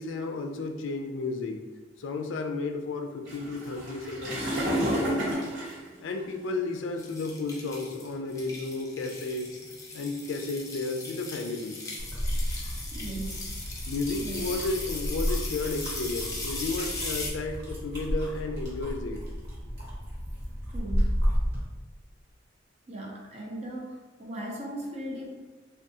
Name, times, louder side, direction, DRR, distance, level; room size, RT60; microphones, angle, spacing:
voice 1, 0.0-1.6 2.0-5.3 6.0-9.6 9.9-11.8 13.9-19.2, left 3 dB, 85° left, 4 dB, 0.4 m, -33 dB
sound 1, 3.2-6.8 7.5-7.7 8.4-8.5 8.8-9.0 9.6-10.1 11.0-12.1 12.5-13.0 13.5-13.8 14.2-16.9, equal, 75° right, 1.2 m, -32 dB
sound 2, 7.0-17.3, left 2 dB, 15° left, 0.5 m, -39 dB
sound 3, 12.0-21.6, equal, 55° right, 1.1 m, -32 dB
voice 2, 12.9-13.5 14.2-14.4 20.7-21.3 22.9-25.5, right 1 dB, 35° right, -2 dB, 0.6 m, -38 dB
3.5 x 2.3 x 2.7 m, 1.3 s
head